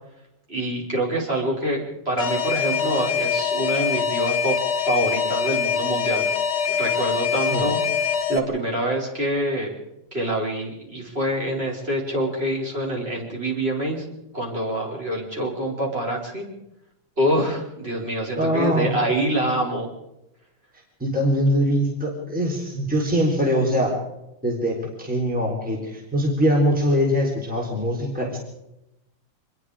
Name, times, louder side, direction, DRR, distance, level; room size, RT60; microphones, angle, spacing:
voice 1, 0.5-4.6 4.9-6.2 6.7-9.8 10.1-14.0 14.3-16.5 17.2-19.9, right 1 dB, 30° right, -3 dB, 5.3 m, -26 dB
Alarm, 2.2-8.4, left 7 dB, 50° left, 2.1 m, -24 dB
voice 2, 18.4-19.0 21.0-24.0 24.4-28.4, equal, 5° right, -1 dB, 3.9 m, -22 dB
25.5 x 21.0 x 5.0 m, 0.89 s
omnidirectional pair, 2.3 m